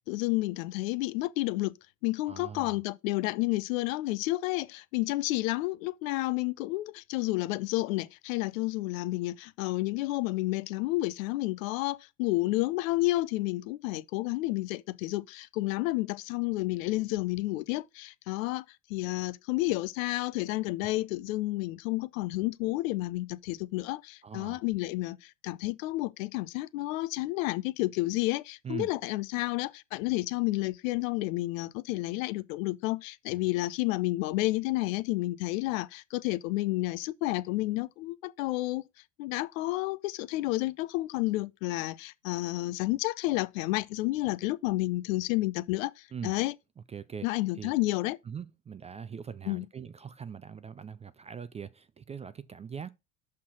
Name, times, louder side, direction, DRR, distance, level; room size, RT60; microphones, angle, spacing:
voice 1, 0.1-1.7 2.0-18.6 18.9-38.8 39.2-46.5 47.2-48.2 49.5-49.7, left 19 dB, 70° left, 0.7 m, -30 dB
voice 2, 2.3-2.8 24.2-24.6 28.6-28.9 46.1-46.4 46.9-47.3 47.6-47.7 48.3-52.9, right 7 dB, 15° right, 0.4 m, -41 dB
5.7 x 4.3 x 6.1 m
hypercardioid pair, 90°, 42 cm